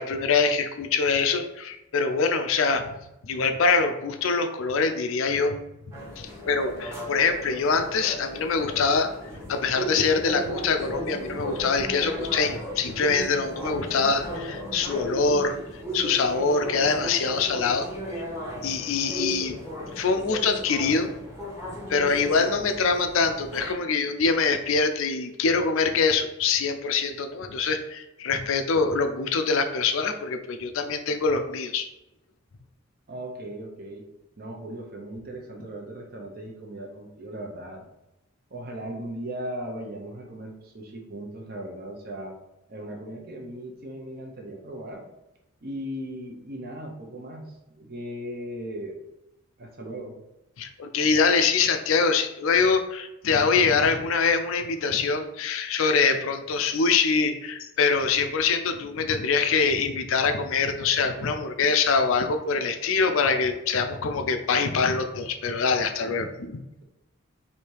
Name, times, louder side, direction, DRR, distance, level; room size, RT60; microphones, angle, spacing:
voice 1, 0.0-2.9 3.2-5.6 5.9-9.1 9.5-17.9 18.2-18.3 18.6-19.6 20.0-21.1 21.9-31.9 50.6-66.6, left 4 dB, 75° left, 6 dB, 0.4 m, -24 dB
sound 1, 5.9-23.7, equal, 15° right, 1.0 m, -36 dB
voice 2, 33.1-34.0 34.4-37.8 38.5-42.4 42.7-45.1 45.6-49.0 49.6-50.2, right 1 dB, 45° right, 1 dB, 0.8 m, -37 dB
3.4 x 2.7 x 4.5 m, 0.91 s
head